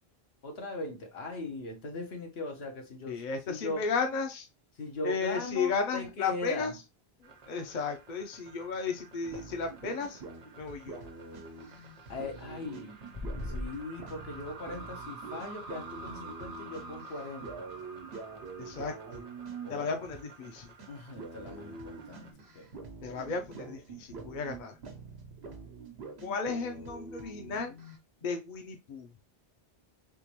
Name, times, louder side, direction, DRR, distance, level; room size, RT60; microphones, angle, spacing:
voice 1, 0.4-3.8 4.8-6.8 12.1-12.9 13.4-17.7 19.6-20.1 20.4-20.6 20.9-22.7, left 2 dB, 75° left, 1.2 m, -39 dB
voice 2, 3.1-4.5 5.0-6.7 7.2-10.2 10.6-11.0 18.6-19.2 19.7-20.7 23.0-24.8 26.2-27.8 28.2-29.1, left 5 dB, 55° left, 0.8 m, -34 dB
sound 1, 7.2-22.3, right 3 dB, 45° right, 0.7 m, -50 dB
sound 2, 9.2-20.5 20.8-20.9 21.2-28.0, right 4 dB, 85° right, 1.1 m, -46 dB
sound 3, 13.1-13.7, left 1 dB, 30° left, 0.3 m, -36 dB
3.6 x 3.0 x 2.9 m
omnidirectional pair, 1.0 m